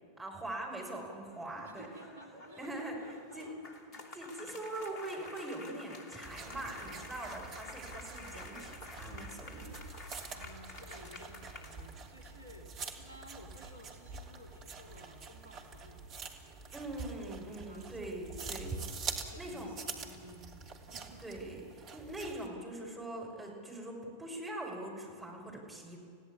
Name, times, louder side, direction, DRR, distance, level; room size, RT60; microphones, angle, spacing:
voice 1, 0.2-1.9 2.6-3.5 4.1-9.8 16.7-18.8 19.4-19.7 21.2-26.0, right 1 dB, 5° right, -2 dB, 6.1 m, -42 dB
sound 1, 1.2-12.2, left 3 dB, 40° left, 2.5 m, -50 dB
voice 2, 1.6-3.6 4.3-4.5 6.7-7.5 10.3-16.1 16.7-18.0 19.2-21.2, equal, 70° right, 3 dB, 2.9 m, -55 dB
sound 2, 6.2-22.5, right 4 dB, 35° right, 2.8 m, -45 dB
29.5 x 16.5 x 8.6 m, 2.3 s
figure-of-eight pair, 90°, 0 cm